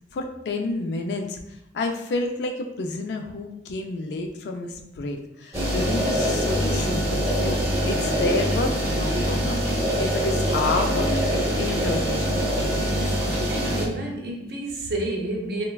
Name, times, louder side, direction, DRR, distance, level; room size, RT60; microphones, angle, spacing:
voice 1, 0.1-11.1 11.6-12.9, left 2 dB, 70° left, 4 dB, 0.3 m, -30 dB
sound 1, 5.5-13.9, equal, 15° right, 0.5 m, -24 dB
voice 2, 13.5-15.6, right 1 dB, 60° right, 0 dB, 0.6 m, -30 dB
3.1 x 2.2 x 2.2 m, 0.82 s
head